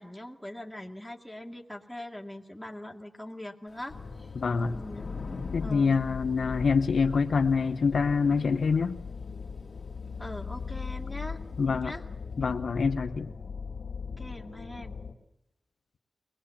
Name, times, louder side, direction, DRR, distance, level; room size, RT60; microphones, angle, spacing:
voice 1, 0.0-4.3 4.7-5.1 5.6-6.0 10.2-12.0 14.2-15.0, left 1 dB, 5° left, 1 dB, 2.4 m, -42 dB
Thunder / Rain, 3.7-12.0, left 3 dB, 45° left, 2.4 m, -47 dB
sound 1, 3.9-15.1, left 5 dB, 85° left, 2.4 m, -39 dB
voice 2, 4.4-4.8 5.5-9.0 11.6-11.9 12.4-13.3, left 5 dB, 65° left, 8 dB, 1.0 m, -26 dB
23.0 x 20.0 x 8.5 m, 0.91 s
wide cardioid pair, 120°, 0 cm